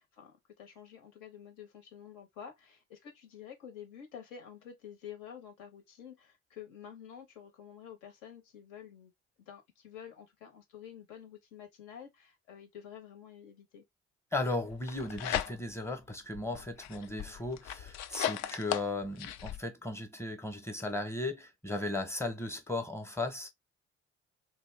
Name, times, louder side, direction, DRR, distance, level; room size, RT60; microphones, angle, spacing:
voice 1, 0.0-9.1 9.4-13.8, left 8 dB, 70° left, 1.1 m, -49 dB
voice 2, 14.3-23.5, left 2 dB, 5° left, 0.9 m, -36 dB
sound 1, 14.7-15.9 16.3-19.6, left 10 dB, 50° left, 0.5 m, -37 dB
2.7 x 2.1 x 3.3 m
hypercardioid pair, 50°, 34 cm